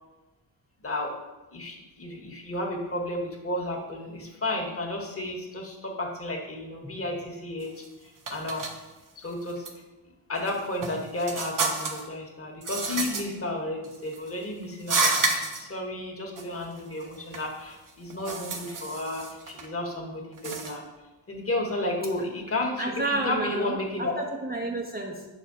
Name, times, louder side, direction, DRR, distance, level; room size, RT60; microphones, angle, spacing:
voice 1, 0.8-1.1 1.5-8.6 9.2-9.6 10.3-20.9 21.3-24.2, left 1 dB, 30° left, 1 dB, 1.6 m, -32 dB
sound 1, 7.6-7.9 8.3-8.7 9.5-9.7 10.4-12.1 12.6-13.2 13.8-14.3 14.8-15.6 16.4-16.5 16.8-17.5 17.9-19.7 20.3-20.8, right 3 dB, 40° right, 1.0 m, -30 dB
voice 2, 22.8-25.3, right 2 dB, 20° right, 0 dB, 0.8 m, -30 dB
5.8 x 4.3 x 4.1 m, 1.1 s
supercardioid pair, 65°, 48 cm